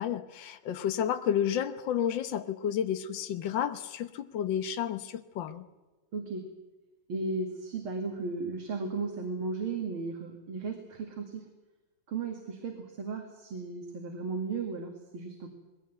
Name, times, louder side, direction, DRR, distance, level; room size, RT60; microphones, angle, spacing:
voice 1, 0.0-5.6, left 9 dB, 65° left, 9 dB, 1.7 m, -31 dB
voice 2, 6.1-6.5 7.1-11.5 12.1-15.5, right 4 dB, 80° right, 3 dB, 3.1 m, -35 dB
21.0 x 17.5 x 9.4 m, 1.2 s
omnidirectional pair, 2.3 m